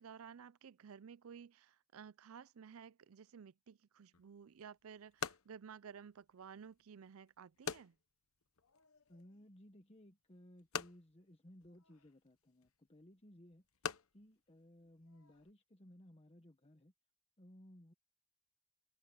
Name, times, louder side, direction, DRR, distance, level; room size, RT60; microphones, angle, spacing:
voice 1, 0.0-8.0, right 7 dB, 75° right, 0.5 m, -54 dB
sound 1, 4.1-15.5, left 6 dB, 75° left, 1.1 m, -49 dB
voice 2, 9.1-16.9 17.4-17.9, left 1 dB, 30° left, 1.2 m, -60 dB
head